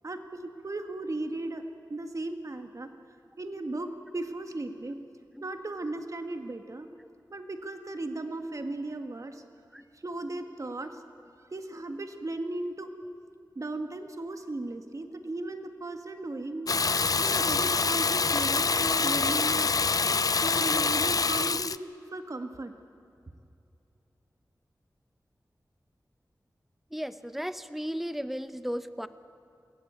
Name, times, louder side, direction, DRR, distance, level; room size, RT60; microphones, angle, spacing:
voice 1, 0.0-1.6 1.9-2.9 3.4-5.0 5.4-6.9 7.3-9.4 9.9-11.0 11.5-12.9 13.6-16.7 17.2-19.8 20.4-22.7, right 2 dB, 50° right, 6 dB, 1.6 m, -36 dB
Water tap faucet / Bathtub (filling or washing), 16.7-21.8, left 4 dB, 55° left, 0.4 m, -26 dB
voice 2, 26.9-29.1, equal, 5° right, 12 dB, 0.8 m, -35 dB
22.5 x 17.0 x 8.7 m, 2.6 s
wide cardioid pair, 80°, 7 cm